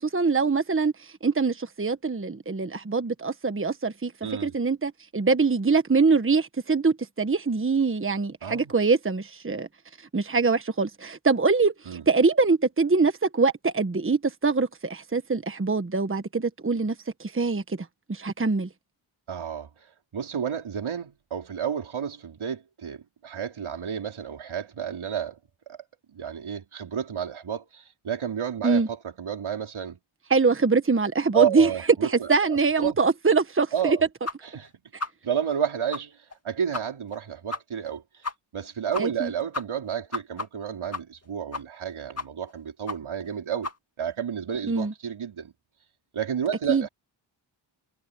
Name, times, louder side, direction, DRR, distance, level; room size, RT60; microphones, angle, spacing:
voice 1, 0.1-4.1 4.4-9.7 10.1-11.7 12.1-17.8 18.1-18.7 28.6-28.9 30.3-31.7 32.0-34.0 39.0-39.3 44.7-44.9 46.7-46.8, right 4 dB, 25° right, 1.4 m, -23 dB
voice 2, 4.2-4.6 8.4-8.7 11.9-12.0 19.3-19.7 20.1-25.4 25.7-25.8 26.1-30.0 31.3-33.0 33.7-34.0 34.5-34.7 35.2-38.0 38.5-43.7 44.0-45.5 46.1-46.9, right 8 dB, 80° right, 4.6 m, -31 dB
sound 1, 34.3-34.4 34.6-34.7 35.0-35.1 35.5-35.6 35.9-36.0 36.3-36.4 36.7-36.8 37.1-37.2 37.5-37.6 37.9-38.0 38.2-38.3 38.6-38.7 38.9-39.3 39.5-41.3 41.5-41.9 42.2-42.5 42.9-43.0 43.2-43.3 43.6-43.8, left 3 dB, 30° left, 2.3 m, -32 dB
cardioid pair, 55°, 48 cm